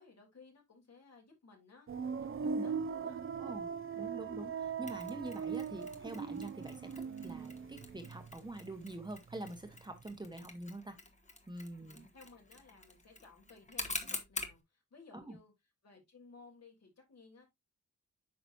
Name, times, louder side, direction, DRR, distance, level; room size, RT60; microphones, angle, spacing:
voice 1, 0.0-3.2 11.8-15.5 15.8-17.4, left 4 dB, 60° left, 3.3 m, -59 dB
sound 1, 1.9-8.7 9.0-9.8, right 6 dB, 45° right, 0.7 m, -40 dB
voice 2, 3.4-11.0 11.5-12.1 15.1-15.4, right 2 dB, 15° right, 1.1 m, -45 dB
Mechanisms, 4.9-14.6, left 2 dB, 25° left, 1.4 m, -47 dB
9.1 x 5.9 x 2.7 m
wide cardioid pair, 160°, 30 cm